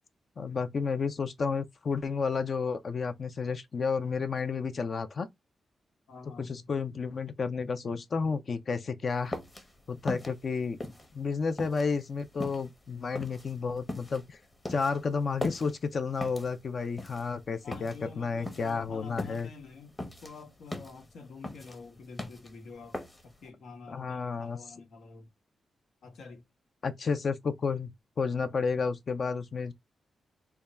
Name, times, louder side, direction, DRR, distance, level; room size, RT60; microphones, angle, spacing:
voice 1, 0.4-5.3 6.4-9.4 9.9-10.8 11.1-14.4 14.7-19.5 23.9-24.6 26.8-27.9 28.2-29.7, left 5 dB, 45° left, 0.4 m, -31 dB
voice 2, 6.1-6.7 17.6-25.3 26.0-26.5, left 4 dB, 85° left, 1.0 m, -48 dB
sound 1, 9.1-23.5, left 1 dB, 20° left, 0.8 m, -41 dB
3.5 x 2.2 x 4.0 m
wide cardioid pair, 145°, 0 cm